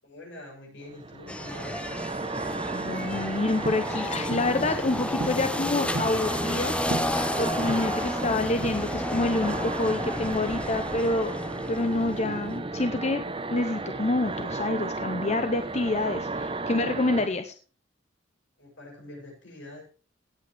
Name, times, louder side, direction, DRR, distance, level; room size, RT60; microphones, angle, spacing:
voice 1, 0.0-1.9 18.6-19.8, left 1 dB, 80° left, 0 dB, 7.6 m, -45 dB
sound 1, 0.9-17.3, right 2 dB, 30° right, 1.1 m, -34 dB
sound 2, 1.3-12.4, left 1 dB, 5° left, 0.7 m, -32 dB
voice 2, 2.7-11.4 11.7-13.2 13.5-17.5, left 2 dB, 35° left, 8 dB, 0.8 m, -27 dB
sound 3, 3.6-3.9 4.3-4.6 5.2-5.5 5.7-6.2 6.9-7.2 7.7-8.0 8.6-9.1, right 3 dB, 75° right, 0.7 m, -35 dB
17.5 x 8.7 x 3.5 m, 0.38 s
head